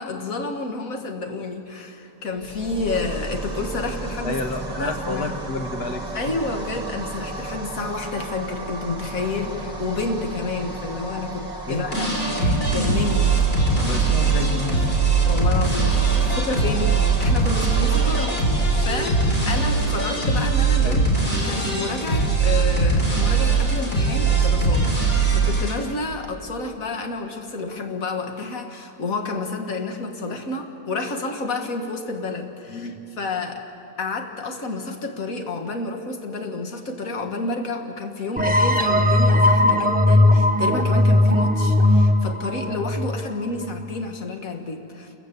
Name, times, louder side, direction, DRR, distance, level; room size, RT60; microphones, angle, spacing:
voice 1, 0.0-4.4 4.8-5.3 6.1-12.4 12.7-13.3 15.2-33.7 34.0-45.1, left 3 dB, 55° left, 4 dB, 2.1 m, -30 dB
sound 1, 2.3-18.3, right 2 dB, 25° right, 1.9 m, -33 dB
voice 2, 4.2-6.0 11.7-11.9 12.4-12.6 13.8-14.8 16.2-16.3 20.8-21.0 32.7-33.0, left 2 dB, 70° left, 4 dB, 2.2 m, -30 dB
sound 2, 11.9-25.7, right 4 dB, 35° left, 4.1 m, -20 dB
sound 3, 38.4-43.8, left 1 dB, 10° right, 0.7 m, -18 dB
28.0 x 15.0 x 8.4 m, 2.8 s
omnidirectional pair, 1.7 m